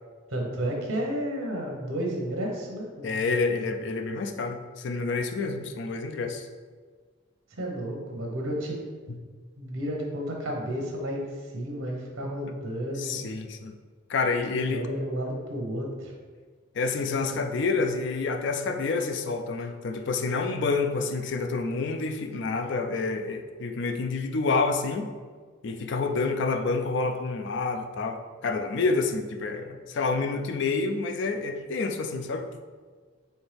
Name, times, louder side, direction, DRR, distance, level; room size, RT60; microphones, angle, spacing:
voice 1, 0.3-3.1 7.6-8.8 9.6-11.2 11.5-13.2 14.5-16.1, equal, 85° right, 0 dB, 0.9 m, -32 dB
voice 2, 3.0-6.5 9.1-9.2 12.9-13.7 14.1-14.9 16.7-25.1 25.6-32.5, left 4 dB, 60° left, 6 dB, 0.4 m, -28 dB
4.4 x 3.3 x 3.3 m, 1.5 s
head